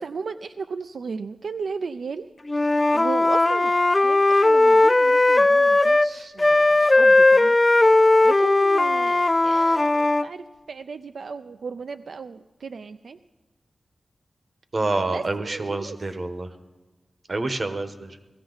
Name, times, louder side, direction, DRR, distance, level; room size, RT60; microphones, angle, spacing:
voice 1, 0.0-2.3 2.9-3.7 4.0-7.6 8.2-13.2 15.1-16.0 17.3-17.6, right 5 dB, 85° right, 10 dB, 0.4 m, -35 dB
Wind instrument woodwind instrument, 2.5-6.1 6.4-10.3, left 2 dB, 25° left, 0.3 m, -18 dB
voice 2, 14.7-16.5 17.3-18.2, right 2 dB, 50° right, 8 dB, 1.0 m, -27 dB
17.5 x 14.5 x 3.9 m, 1.3 s
wide cardioid pair, 90°, 0 cm